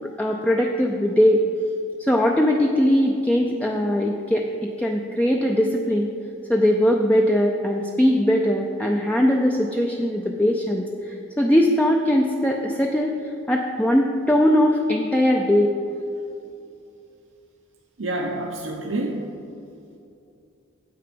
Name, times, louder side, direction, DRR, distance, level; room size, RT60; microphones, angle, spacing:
voice 1, 0.0-1.4 2.0-6.1 6.5-15.7, equal, 5° left, 1 dB, 0.4 m, -20 dB
voice 2, 18.0-19.3, right 2 dB, 80° right, -1 dB, 0.8 m, -28 dB
9.0 x 7.8 x 5.1 m, 2.6 s
head